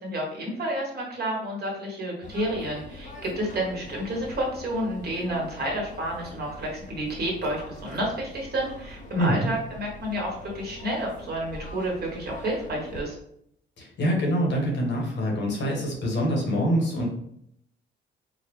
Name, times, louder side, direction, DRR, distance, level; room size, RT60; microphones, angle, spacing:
voice 1, 0.0-13.1, right 1 dB, 55° right, -2 dB, 1.3 m, -30 dB
sound 1, 2.2-13.0, left 2 dB, 40° left, 0.6 m, -43 dB
voice 2, 9.2-9.5 13.8-17.1, equal, 65° left, -1 dB, 1.2 m, -25 dB
4.0 x 2.0 x 3.0 m, 0.73 s
cardioid pair, 90°, 20 cm